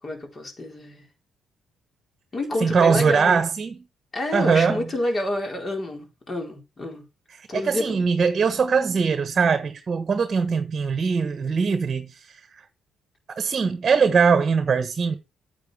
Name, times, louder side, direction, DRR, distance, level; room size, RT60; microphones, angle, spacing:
voice 1, 0.0-1.1 2.3-3.4 4.1-7.0 7.5-8.0, left 1 dB, 35° left, 4.1 m, -28 dB
voice 2, 2.6-3.8 4.3-4.9 7.4-12.6 13.4-15.2, right 5 dB, 40° right, 1.2 m, -21 dB
9.2 x 8.0 x 3.4 m
cardioid pair, 90°, 0 cm